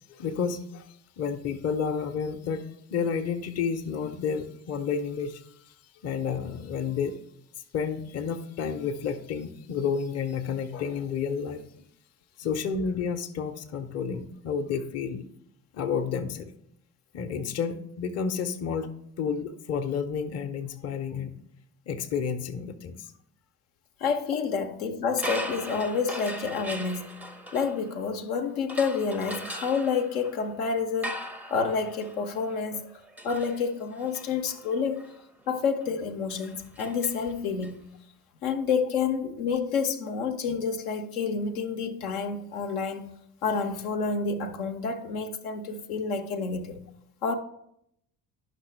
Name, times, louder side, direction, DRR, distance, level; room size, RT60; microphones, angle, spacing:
voice 1, 0.1-0.9 1.2-5.4 6.0-7.2 7.7-11.8 12.4-15.3 15.7-16.5 17.1-18.9 19.2-21.4 21.9-23.1, left 6 dB, 35° left, 0.7 m, -30 dB
voice 2, 24.0-27.2 27.5-31.1 31.5-32.9 33.2-35.0 35.5-37.8 38.4-43.1 43.4-46.8 47.2-47.3, left 5 dB, 70° left, 0.7 m, -29 dB
sound 1, 25.1-28.2 28.7-37.7, equal, 5° right, 0.5 m, -40 dB
10.5 x 5.8 x 3.2 m
figure-of-eight pair, 45°, 46 cm